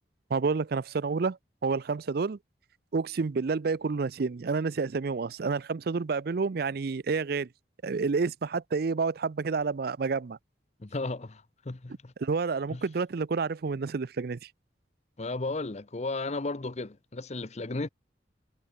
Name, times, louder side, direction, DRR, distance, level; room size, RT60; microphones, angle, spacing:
voice 1, 0.3-2.4 2.9-7.5 7.8-10.4 12.2-14.4, right 4 dB, 55° right, 0.5 m, -29 dB
voice 2, 10.8-12.1 12.7-12.8 15.2-17.9, left 2 dB, 40° left, 0.8 m, -34 dB
head